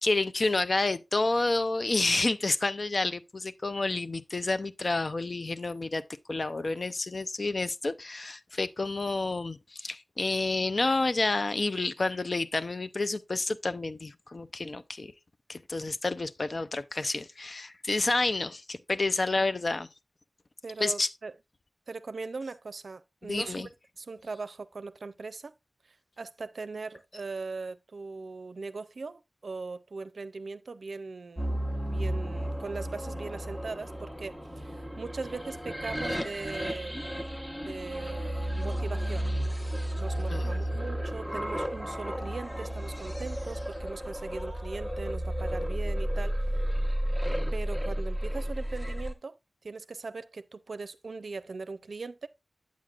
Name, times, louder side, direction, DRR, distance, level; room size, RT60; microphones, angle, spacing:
voice 1, 0.0-6.0 6.3-15.1 15.5-19.9 20.8-21.1 23.3-23.7 40.3-40.5, left 2 dB, 55° left, 0.5 m, -29 dB
voice 2, 20.6-21.3 21.9-23.7 24.0-25.5 25.9-37.0 37.6-39.3 39.9-46.5 47.5-49.4 49.6-52.3, right 4 dB, 80° right, 0.5 m, -40 dB
sound 1, 31.4-49.1, equal, 15° left, 1.0 m, -33 dB
8.4 x 7.5 x 2.4 m
wide cardioid pair, 70°, 0 cm